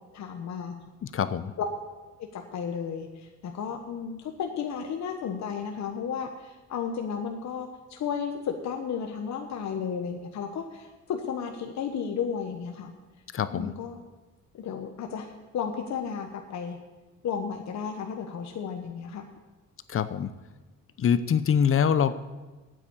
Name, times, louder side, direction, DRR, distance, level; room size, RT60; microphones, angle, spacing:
voice 1, 0.1-0.8 1.6-1.7 2.2-12.9 13.5-14.0 14.5-16.8 17.2-19.3, left 7 dB, 65° left, 4 dB, 1.1 m, -33 dB
voice 2, 1.0-1.5 13.3-13.7 19.9-20.3 21.0-22.2, left 7 dB, 45° left, 13 dB, 0.7 m, -24 dB
9.1 x 8.4 x 8.3 m, 1.2 s
cardioid pair, 90°, 30 cm